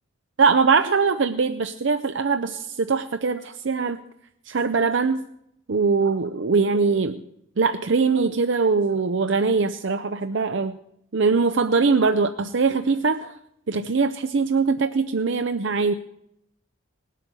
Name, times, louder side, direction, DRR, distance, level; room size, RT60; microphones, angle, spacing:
voice 1, 0.4-4.0 4.5-5.2 5.7-7.2 7.6-10.8 11.1-13.3 13.7-15.9, right 4 dB, 60° right, 9 dB, 0.6 m, -22 dB
19.0 x 8.4 x 6.9 m, 0.76 s
head